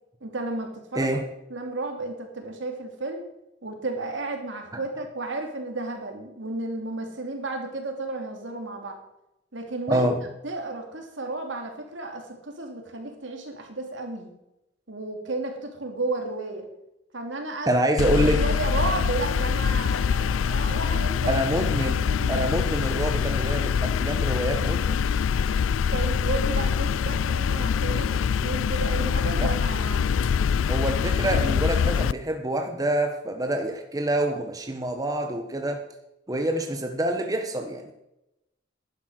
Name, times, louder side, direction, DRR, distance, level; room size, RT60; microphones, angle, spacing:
voice 1, 0.2-1.1 1.5-3.2 3.6-9.0 9.5-10.1 10.4-14.3 14.9-16.6 17.1-17.7 18.2-21.5 21.8-22.4 25.9-30.1, right 2 dB, 70° right, 2.9 m, -33 dB
voice 2, 0.9-1.3 4.7-4.8 9.9-10.3 17.7-18.5 21.3-25.0 29.3-29.5 30.7-35.8 36.3-37.9, right 1 dB, 20° right, 1.1 m, -26 dB
sound 1, 18.0-32.1, left 6 dB, 90° left, 0.4 m, -24 dB
11.5 x 11.0 x 6.4 m
head